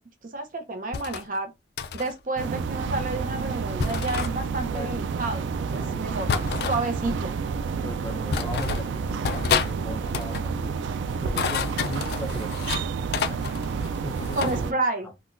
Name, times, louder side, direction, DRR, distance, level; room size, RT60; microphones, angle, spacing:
voice 1, 0.3-1.5 1.9-6.3 6.7-7.3 14.3-15.1, right 2 dB, 45° right, 0.6 m, -30 dB
sound 1, 0.9-1.3 1.8-2.1 3.8-4.3 6.3-6.8 7.7-7.8 8.3-8.9 9.2-9.7 10.0-10.5 11.1-12.8 13.1-14.6, left 6 dB, 60° left, 0.3 m, -29 dB
sound 2, 2.4-14.7, right 5 dB, 90° right, 0.3 m, -30 dB
voice 2, 5.7-6.7 7.8-10.8 11.2-12.6 13.3-13.4 14.0-14.7, left 1 dB, 15° left, 0.6 m, -38 dB
3.7 x 2.2 x 2.5 m
head